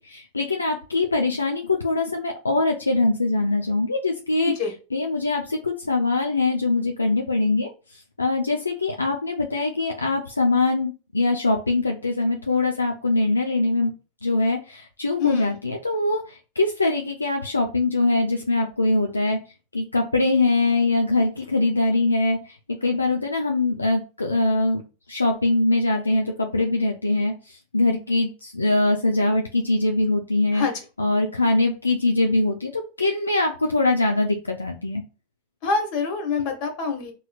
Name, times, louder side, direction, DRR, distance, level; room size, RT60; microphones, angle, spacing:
voice 1, 0.0-4.5 4.9-13.9 14.2-19.4 19.7-24.8 25.1-30.7 31.0-35.0, left 2 dB, 85° left, 2 dB, 0.4 m, -23 dB
voice 2, 15.2-15.5 30.5-30.7 35.6-37.1, left 5 dB, 50° left, 3 dB, 1.5 m, -25 dB
4.1 x 3.1 x 2.3 m, 0.33 s
figure-of-eight pair, 85°, 0 cm